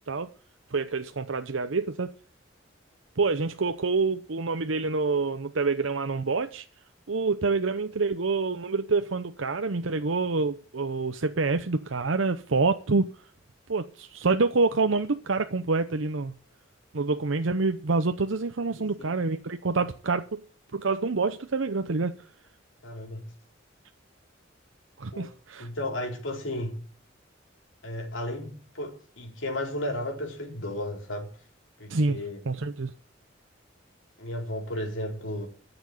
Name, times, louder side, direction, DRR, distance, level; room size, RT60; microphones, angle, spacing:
voice 1, 0.7-2.1 3.2-6.7 7.1-13.1 13.7-16.3 16.9-20.4 20.7-22.1 25.0-25.7 31.9-32.2 32.5-32.9, right 3 dB, 75° right, 0.8 m, -27 dB
voice 2, 18.8-19.1 22.8-23.3 25.1-25.3 25.6-26.8 27.8-31.3 31.8-32.4 34.2-35.5, left 1 dB, 80° left, 4.5 m, -34 dB
13.0 x 7.1 x 9.8 m
head